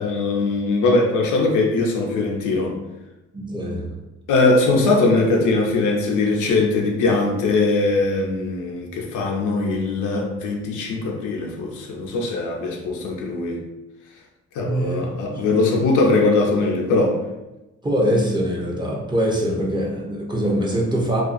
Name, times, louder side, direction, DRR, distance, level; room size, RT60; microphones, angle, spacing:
voice 1, 0.0-2.7 4.3-13.6 14.5-17.2, left 3 dB, 75° left, 0 dB, 0.6 m, -21 dB
voice 2, 3.3-3.9 14.6-15.0 15.3-15.9 17.8-21.2, equal, 15° right, -3 dB, 0.6 m, -23 dB
2.4 x 2.3 x 2.5 m, 1.0 s
cardioid pair, 90°, 30 cm